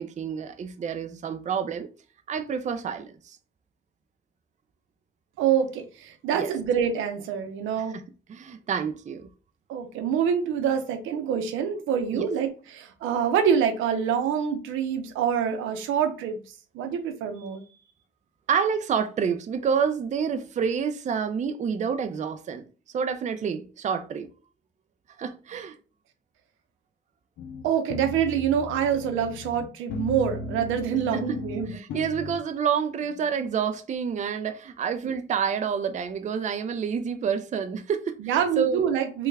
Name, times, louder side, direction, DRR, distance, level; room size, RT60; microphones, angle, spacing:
voice 1, 0.0-1.9 2.3-3.4 6.4-6.5 8.3-9.3 12.1-12.3 18.5-22.7 22.9-24.3 25.2-25.7 31.1-31.4 31.7-38.9, right 7 dB, 35° right, 0.4 m, -28 dB
voice 2, 5.4-8.0 9.7-16.4 16.7-17.6 27.6-31.8 35.0-35.1 38.2-39.3, right 8 dB, 90° right, 0.7 m, -26 dB
sound 1, 27.4-32.4, left 3 dB, 75° left, 0.5 m, -36 dB
3.3 x 2.3 x 3.2 m
cardioid pair, 90°, 20 cm